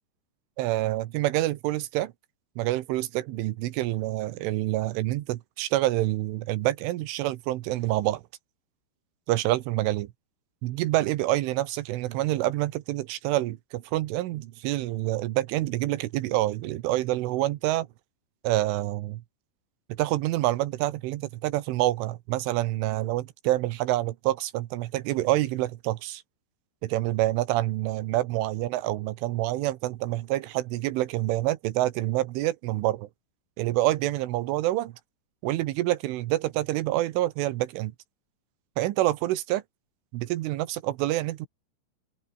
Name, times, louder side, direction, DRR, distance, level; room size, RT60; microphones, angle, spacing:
voice 1, 0.6-2.1 2.6-8.2 9.3-10.1 10.6-17.9 18.4-19.2 20.0-26.2 26.8-33.1 33.6-34.9 35.4-37.9 38.8-39.6 40.1-41.5, right 16 dB, 80° right, 3.5 m, -27 dB
open air
omnidirectional pair, 5.6 m